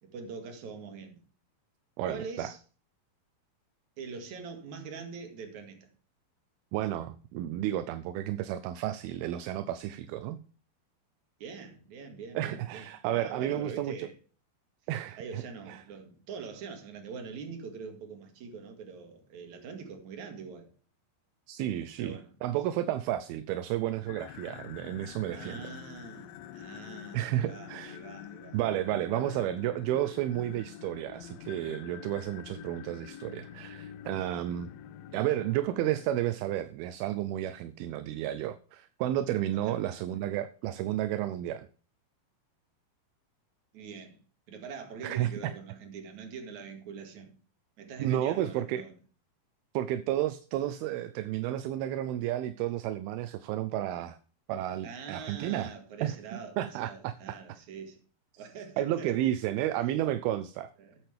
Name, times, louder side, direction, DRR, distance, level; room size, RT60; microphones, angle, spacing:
voice 1, 0.0-1.2 2.0-2.6 4.0-5.9 11.4-12.9 13.1-14.1 15.2-20.7 22.0-22.3 25.3-28.6 39.5-39.8 43.7-44.2 44.5-47.3 47.8-48.9 54.8-58.0 58.4-59.4 60.8-61.0, right 5 dB, 55° right, 3.1 m, -43 dB
voice 2, 2.0-2.5 6.7-10.4 12.4-14.1 14.9-15.4 15.7-15.8 21.5-25.6 27.1-28.0 28.5-34.7 35.1-41.7 45.0-45.5 48.0-48.8 49.7-54.2 54.5-55.7 56.0-57.4 58.8-60.7, right 12 dB, 80° right, 2.4 m, -32 dB
sound 1, 24.1-36.1, left 10 dB, 80° left, 2.1 m, -46 dB
13.5 x 8.9 x 3.4 m
omnidirectional pair, 4.6 m